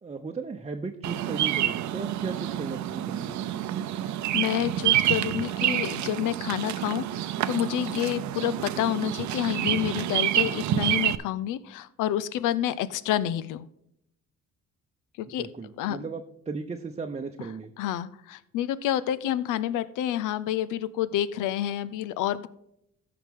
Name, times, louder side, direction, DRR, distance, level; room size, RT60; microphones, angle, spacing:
voice 1, 0.0-3.4 15.4-17.7, right 4 dB, 20° right, 3 dB, 0.8 m, -36 dB
Bird vocalization bird call bird song, 1.0-11.2, right 12 dB, 70° right, 0.6 m, -28 dB
voice 2, 4.3-13.7 15.2-15.5 15.8-16.1 17.8-22.5, left 12 dB, 90° left, 17 dB, 0.6 m, -29 dB
15.0 x 5.9 x 3.7 m, 0.78 s
cardioid pair, 90°, 30 cm